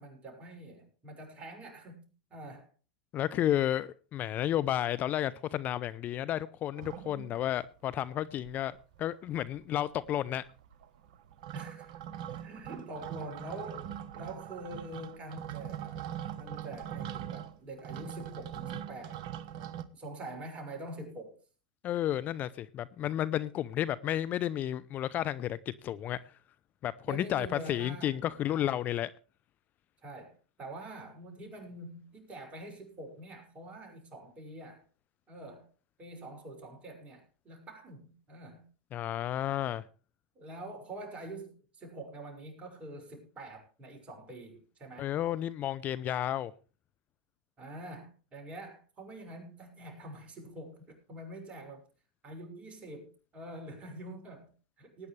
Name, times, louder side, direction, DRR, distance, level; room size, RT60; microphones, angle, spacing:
voice 1, 0.0-2.7 11.5-11.9 12.3-16.0 16.4-19.2 19.7-21.4 27.0-28.2 28.5-28.8 30.0-34.8 35.3-35.7 36.0-38.7 40.3-45.1 47.6-51.8 52.2-55.1, right 1 dB, 30° right, 6.1 m, -45 dB
voice 2, 3.1-10.4 21.8-26.2 26.8-29.1 38.9-39.8 45.0-46.5, left 12 dB, 35° left, 0.6 m, -32 dB
sound 1, 6.8-7.7 8.1-8.2 8.4-9.0 9.3-19.8, right 10 dB, 60° right, 1.1 m, -42 dB
19.5 x 9.7 x 3.3 m
hypercardioid pair, 95°, 5 cm